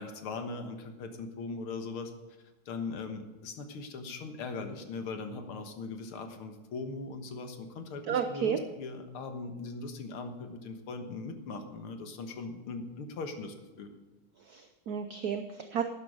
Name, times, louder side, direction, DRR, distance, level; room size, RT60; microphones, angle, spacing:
voice 1, 0.0-2.1 2.7-13.9, left 3 dB, 80° left, 6 dB, 2.2 m, -40 dB
voice 2, 8.1-8.6 14.4-15.8, right 7 dB, 65° right, 7 dB, 1.0 m, -32 dB
11.5 x 10.5 x 4.8 m, 1.2 s
omnidirectional pair, 2.3 m